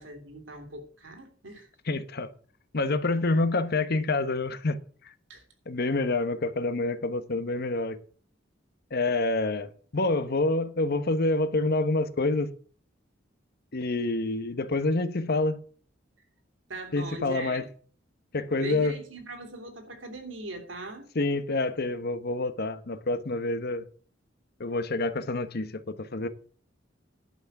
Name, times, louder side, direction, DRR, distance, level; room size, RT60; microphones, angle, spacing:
voice 1, 0.0-1.7 5.3-5.4 16.7-17.6 18.6-21.1, right 2 dB, 75° right, 2.9 m, -40 dB
voice 2, 1.9-2.3 2.7-4.8 5.7-8.0 8.9-12.5 13.7-15.6 16.9-17.6 18.3-18.9 21.1-23.9 24.6-26.3, left 2 dB, 55° left, 1.0 m, -27 dB
11.0 x 5.9 x 7.0 m
head